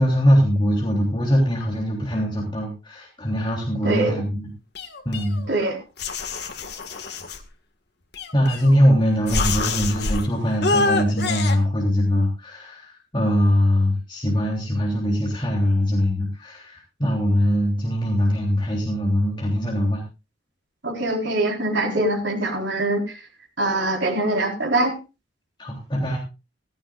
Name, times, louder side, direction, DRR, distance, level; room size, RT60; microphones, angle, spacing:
voice 1, 0.0-4.5 5.0-5.4 8.3-20.0 25.6-26.2, equal, 25° left, -2 dB, 3.3 m, -22 dB
sound 1, 4.7-5.6 6.0-7.4 8.1-8.9 9.3-10.2 10.6-11.6, left 3 dB, 55° left, 1.9 m, -26 dB
voice 2, 20.8-23.2 23.6-25.0, right 2 dB, 70° right, 1 dB, 4.3 m, -23 dB
16.5 x 15.0 x 2.5 m, 0.29 s
head